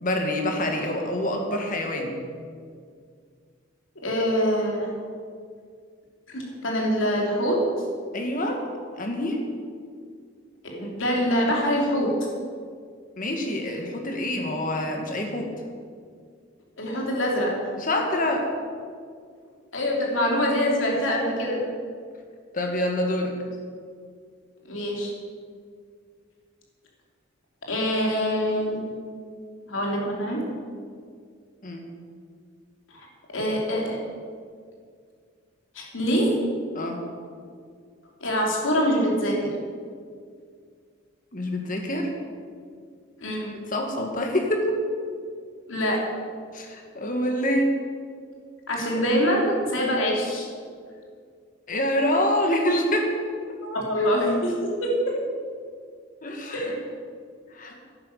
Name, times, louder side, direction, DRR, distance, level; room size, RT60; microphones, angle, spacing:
voice 1, 0.0-2.1 8.1-8.6 9.0-9.4 13.2-15.5 17.8-18.5 22.5-23.3 31.6-31.9 36.7-37.0 41.3-42.1 43.7-44.6 46.5-47.8 51.7-53.1 56.2-56.7 57.5-57.8, left 1 dB, 40° left, 2 dB, 2.0 m, -26 dB
voice 2, 4.0-5.0 6.3-7.7 10.6-12.2 16.8-17.6 19.7-21.7 24.7-25.1 27.7-28.9 29.7-30.5 32.9-33.1 33.3-34.0 35.7-36.6 38.2-39.5 43.2-43.5 45.7-46.2 48.7-50.5 53.6-55.0 56.5-56.8, equal, 75° left, -2 dB, 3.2 m, -24 dB
11.5 x 9.8 x 6.8 m, 2.1 s
head